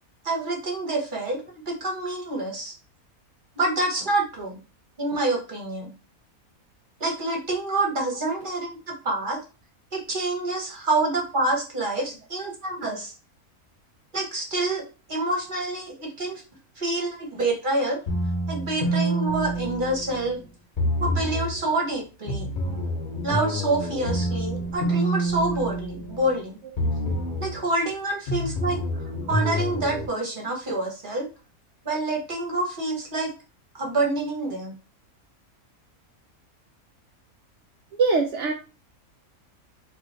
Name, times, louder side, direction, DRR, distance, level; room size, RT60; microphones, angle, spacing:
voice 1, 0.2-2.7 3.6-4.6 5.0-5.9 7.0-9.4 9.9-13.1 14.1-14.8 15.1-16.4 16.8-18.0 18.5-20.4 21.0-22.5 23.2-26.6 27.4-31.3 31.8-33.3 33.8-34.7, right 2 dB, 40° right, 0 dB, 1.0 m, -27 dB
sound 1, 18.1-20.3 20.8-21.6 22.3-26.4 26.8-27.6 28.3-30.1, right 1 dB, 35° left, 1.0 m, -27 dB
voice 2, 38.0-38.5, right 4 dB, 65° right, 2 dB, 0.7 m, -21 dB
2.9 x 2.7 x 4.0 m, 0.32 s
omnidirectional pair, 1.5 m